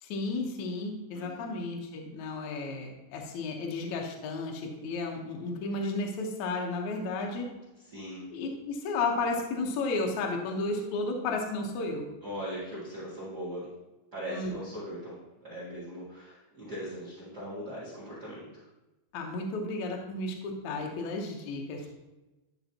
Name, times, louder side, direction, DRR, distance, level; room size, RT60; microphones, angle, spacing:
voice 1, 0.0-7.5 8.3-12.0 14.3-14.5 19.1-21.9, left 3 dB, 90° left, 1 dB, 1.6 m, -33 dB
voice 2, 1.1-1.6 7.9-8.3 12.2-13.7 14.1-18.5 21.8-21.9, equal, 65° right, -9 dB, 0.9 m, -40 dB
11.0 x 5.0 x 2.9 m, 1.1 s
omnidirectional pair, 4.9 m